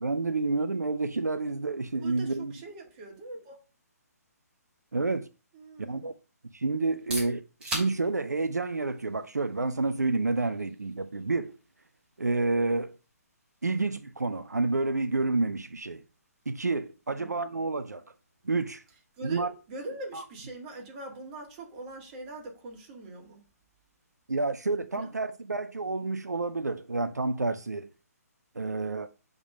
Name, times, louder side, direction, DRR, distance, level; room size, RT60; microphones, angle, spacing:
voice 1, 0.0-2.5 4.9-5.3 5.8-6.1 6.5-11.6 12.2-13.0 13.6-16.0 16.5-18.0 18.4-18.8 19.2-19.5 20.1-20.2 24.3-27.9 28.6-29.1, right 3 dB, 80° right, 0.5 m, -29 dB
voice 2, 2.0-3.6 5.5-6.1 17.1-17.3 19.2-23.4 24.9-25.1, right 2 dB, 30° right, 2.0 m, -42 dB
sound 1, 6.8-22.5, right 1 dB, 10° right, 3.1 m, -47 dB
6.4 x 3.7 x 5.4 m
figure-of-eight pair, 135°, 9 cm